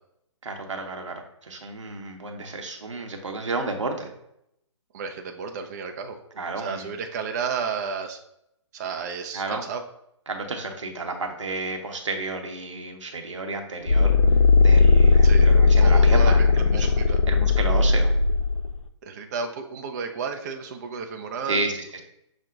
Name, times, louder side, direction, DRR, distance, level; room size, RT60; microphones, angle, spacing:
voice 1, 0.4-4.1 6.3-7.0 9.3-9.6 10.3-16.9 17.3-18.1 21.4-22.0, right 3 dB, 75° right, 3 dB, 0.8 m, -32 dB
voice 2, 4.9-6.2 6.6-8.2 8.7-9.8 15.2-15.5 15.8-17.2 19.0-21.7, right 5 dB, 35° right, 4 dB, 0.4 m, -32 dB
sound 1, 13.9-18.8, left 4 dB, 85° left, 0.5 m, -17 dB
5.9 x 2.1 x 3.7 m, 0.78 s
figure-of-eight pair, 140°, 16 cm